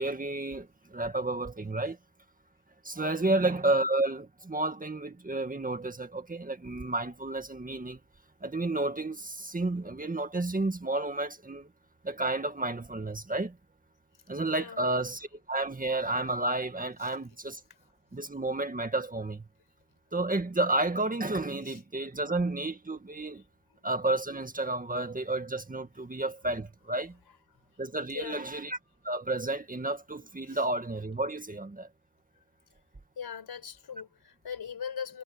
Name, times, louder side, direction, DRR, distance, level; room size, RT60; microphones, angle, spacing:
voice 1, 0.0-2.0 2.8-8.0 8.4-11.7 12.0-13.6 14.3-17.6 18.1-19.5 20.1-23.4 23.8-27.1 27.8-28.8 29.0-31.9, right 2 dB, 20° right, 1.9 m, -31 dB
voice 2, 14.5-15.0 17.0-17.1 21.6-21.8 23.3-23.4 23.7-23.8 28.1-28.6 30.5-30.6 33.1-35.2, left 7 dB, 60° left, 4.8 m, -40 dB
wide cardioid pair, 115°, 42 cm